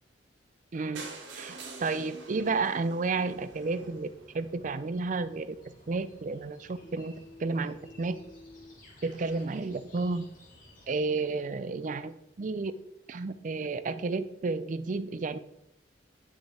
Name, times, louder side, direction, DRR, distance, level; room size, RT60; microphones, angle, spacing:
voice 1, 0.7-1.1 1.3-4.1 4.3-5.6 5.9-7.1 7.4-8.2 9.0-10.2 10.9-12.7 13.1-15.4, right 3 dB, 45° right, 13 dB, 0.4 m, -31 dB
sound 1, 1.0-4.8 5.5-5.6 5.8-5.9 6.2-6.3 6.5-6.6, right 3 dB, 80° right, 1.6 m, -46 dB
sound 2, 3.1-10.9, left 1 dB, 45° left, 2.1 m, -57 dB
Keyboard (musical), 6.8-9.5, left 2 dB, 80° left, 3.2 m, -52 dB
9.6 x 6.3 x 3.3 m, 0.83 s
head